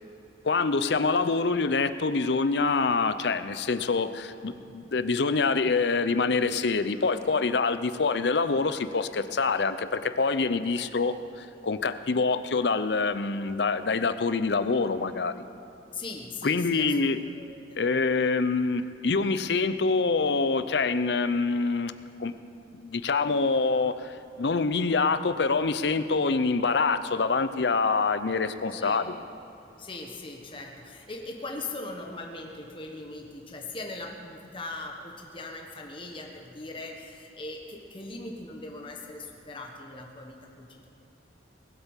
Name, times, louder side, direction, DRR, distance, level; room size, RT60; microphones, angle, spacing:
voice 1, 0.4-15.4 16.4-17.2 17.8-21.9 22.2-22.3 22.7-29.1, left 4 dB, 65° left, 12 dB, 0.6 m, -26 dB
voice 2, 15.9-17.8 28.8-29.1 29.8-40.9, left 2 dB, 30° left, 1 dB, 1.3 m, -40 dB
20.0 x 8.2 x 7.3 m, 2.9 s
head